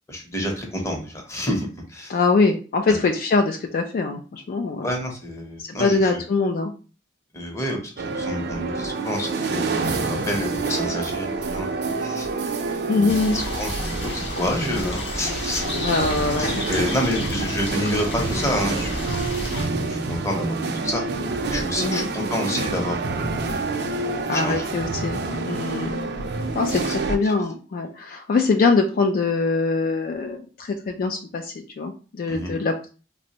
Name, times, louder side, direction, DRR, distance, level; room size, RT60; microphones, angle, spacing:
voice 1, 0.1-2.2 4.8-6.2 7.3-12.3 12.7-15.9 16.4-19.3 19.9-20.6 20.8-21.0 21.5-23.6 24.3-24.7 25.3-25.4 26.7-26.9 27.2-27.3 32.3-32.5, left 1 dB, 15° left, 1 dB, 0.7 m, -29 dB
voice 2, 2.1-4.9 5.6-6.7 9.9-10.2 12.9-13.4 15.7-16.6 21.8-22.1 24.3-25.2 25.5-26.0 26.5-32.9, left 4 dB, 55° left, 4 dB, 0.3 m, -23 dB
sound 1, 8.0-27.2, right 3 dB, 60° right, 0.4 m, -28 dB
sound 2, 13.1-19.7, left 1 dB, 75° left, 0.7 m, -31 dB
3.4 x 2.0 x 2.7 m, 0.36 s
head